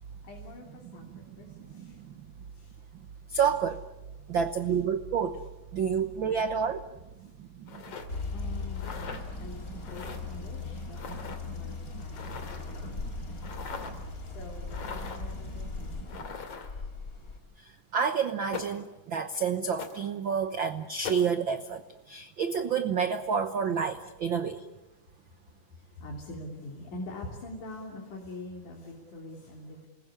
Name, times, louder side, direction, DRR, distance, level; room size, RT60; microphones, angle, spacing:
voice 1, 0.2-1.0 1.4-2.0 2.5-2.7 8.3-12.4 12.7-13.5 14.3-16.5 26.0-29.9, left 2 dB, 65° left, 0 dB, 4.8 m, -45 dB
voice 2, 0.8-1.2 1.7-1.9 3.3-3.8 4.3-5.4 5.7-6.8 7.4-7.5 7.7-7.8 9.1-9.9 10.6-11.2 11.4-11.5 11.9-12.5 12.8-13.4 13.9-14.0 15.0-16.1 17.6-24.6, right 6 dB, 75° right, 9 dB, 1.1 m, -30 dB
sound 1, 7.7-8.1 8.7-9.2 9.8-10.2 11.0-11.4 12.1-12.7 13.4-14.0 14.7-15.3 16.1-16.8 18.5-18.9 19.8-20.0 21.0-21.3, left 5 dB, 50° left, 3.4 m, -40 dB
sound 2, 8.1-17.4, left 4 dB, 25° left, 3.1 m, -39 dB
28.5 x 20.5 x 9.9 m, 1.0 s
omnidirectional pair, 3.8 m